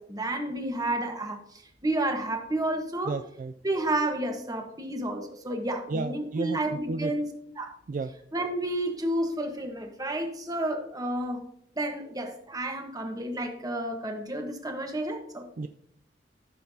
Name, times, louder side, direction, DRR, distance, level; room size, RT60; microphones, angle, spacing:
voice 1, 0.0-3.2 3.6-7.7 8.3-11.5 11.8-15.5, right 1 dB, 20° right, 4 dB, 1.2 m, -31 dB
voice 2, 3.1-3.5 5.9-6.6 6.9-7.1 7.9-8.1 15.6-15.7, right 3 dB, 45° right, 8 dB, 0.4 m, -32 dB
14.0 x 6.6 x 2.8 m, 0.70 s
head